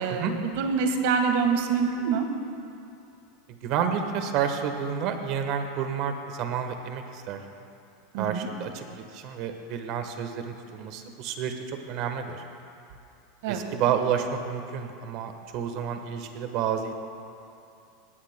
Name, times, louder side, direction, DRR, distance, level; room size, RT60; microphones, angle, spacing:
voice 1, 0.0-2.2 8.1-8.5 13.4-13.6, right 5 dB, 65° right, 5 dB, 1.5 m, -25 dB
voice 2, 3.6-7.4 8.2-12.4 13.5-16.9, right 8 dB, 45° right, 6 dB, 1.1 m, -30 dB
19.5 x 16.5 x 2.2 m, 2.6 s
supercardioid pair, 155°, 0 cm